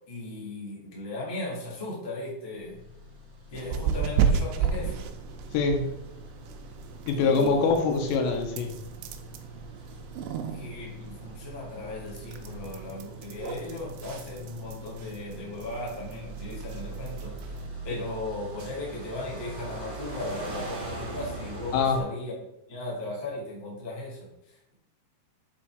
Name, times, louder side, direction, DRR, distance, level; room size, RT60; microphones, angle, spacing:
voice 1, 0.1-2.8 3.5-5.1 7.1-7.7 10.4-17.5 17.8-22.3 22.7-24.7, left 2 dB, 25° left, -6 dB, 0.5 m, -37 dB
sound 1, 2.6-22.0, right 2 dB, 50° right, 1.4 m, -43 dB
sound 2, 3.5-17.7, right 7 dB, 80° right, 2.8 m, -34 dB
voice 2, 5.5-5.9 7.1-8.8 21.7-22.1, left 4 dB, 85° left, 3 dB, 3.1 m, -24 dB
6.8 x 4.3 x 4.6 m, 0.83 s
omnidirectional pair, 4.9 m